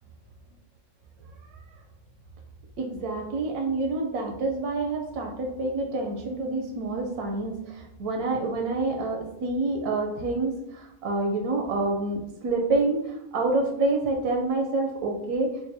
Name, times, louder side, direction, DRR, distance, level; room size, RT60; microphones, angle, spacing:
voice 1, 2.8-15.5, right 2 dB, 85° right, 2 dB, 1.1 m, -27 dB
5.5 x 2.1 x 2.6 m, 0.83 s
omnidirectional pair, 1.6 m